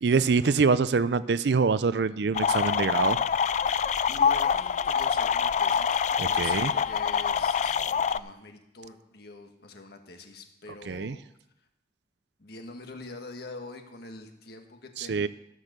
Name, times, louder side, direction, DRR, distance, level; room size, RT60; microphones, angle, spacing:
voice 1, 0.0-3.2 6.2-6.7 10.9-11.2 15.0-15.3, right 5 dB, 65° right, 16 dB, 0.5 m, -25 dB
sound 1, 2.3-8.2, left 7 dB, 40° left, 0.3 m, -25 dB
voice 2, 4.1-11.2 12.4-15.3, left 2 dB, 60° left, 5 dB, 1.5 m, -45 dB
13.5 x 6.5 x 6.6 m, 0.81 s
head